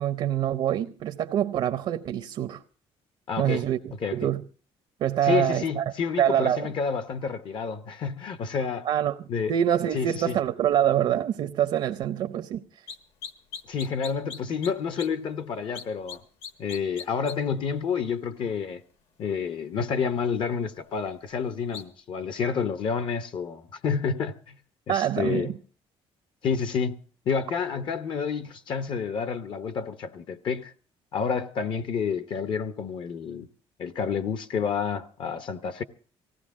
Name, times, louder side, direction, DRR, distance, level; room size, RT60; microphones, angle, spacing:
voice 1, 0.0-2.6 3.4-4.4 5.0-5.8 6.2-6.7 8.8-12.6 24.9-25.6, right 10 dB, 60° right, 0.7 m, -25 dB
voice 2, 3.3-3.6 4.0-4.2 5.2-8.9 9.3-9.5 9.9-10.4 13.7-16.2 16.6-18.8 19.2-24.6 24.9-25.5 26.4-27.0 27.3-30.7 31.1-33.5 33.8-35.8, left 6 dB, 50° left, 0.8 m, -29 dB
sound 1, 12.9-13.0 13.2-14.7 15.0-15.1 15.7-16.2 16.4-17.4 21.7-21.8, left 6 dB, 65° left, 1.4 m, -38 dB
19.0 x 16.0 x 3.6 m
cardioid pair, 155°, 11 cm